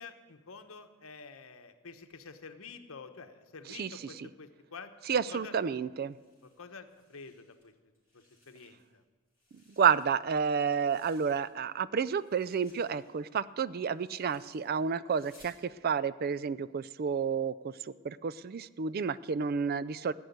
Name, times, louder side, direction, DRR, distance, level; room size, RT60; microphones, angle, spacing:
voice 1, 0.0-5.5 6.4-7.7 8.1-9.0, left 5 dB, 80° left, 8 dB, 1.1 m, -49 dB
voice 2, 3.7-4.3 5.1-6.2 9.8-20.1, right 6 dB, 45° right, 17 dB, 0.4 m, -30 dB
sound 1, 5.9-7.6 7.9-9.0 9.3-11.8 12.1-15.6, left 1 dB, 10° right, 5.4 m, -64 dB
15.5 x 6.4 x 9.5 m, 1.4 s
head